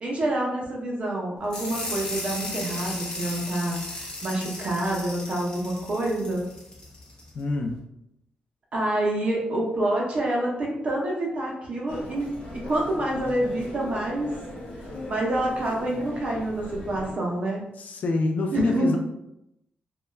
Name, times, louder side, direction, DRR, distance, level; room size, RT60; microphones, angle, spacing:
voice 1, 0.0-6.5 8.7-14.4 15.1-17.6 18.5-19.0, right 1 dB, 40° right, -2 dB, 0.6 m, -27 dB
sound 1, 1.5-7.3, left 2 dB, 25° left, 0.7 m, -35 dB
voice 2, 7.3-7.8 17.8-19.0, left 3 dB, 55° left, 3 dB, 0.3 m, -26 dB
Human voice, 11.9-17.1, left 1 dB, 90° left, 0.9 m, -39 dB
2.2 x 2.2 x 3.0 m, 0.84 s
wide cardioid pair, 160°, 3 cm